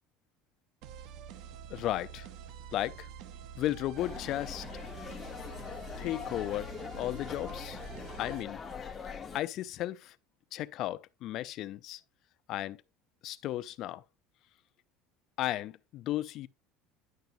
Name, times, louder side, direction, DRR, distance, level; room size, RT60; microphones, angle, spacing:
sound 1, 0.8-8.4, right 8 dB, 60° right, 0.6 m, -47 dB
voice 1, 1.7-2.3 2.7-3.1 3.6-4.6 6.0-6.7 7.0-7.8 8.2-8.6 9.3-10.1 10.5-12.0 12.5-12.8 13.2-14.0 15.4-16.5, left 14 dB, 45° left, 0.5 m, -34 dB
sound 2, 4.0-9.4, left 6 dB, 15° left, 1.1 m, -42 dB
10.5 x 6.9 x 2.6 m
cardioid pair, 160°, 0 cm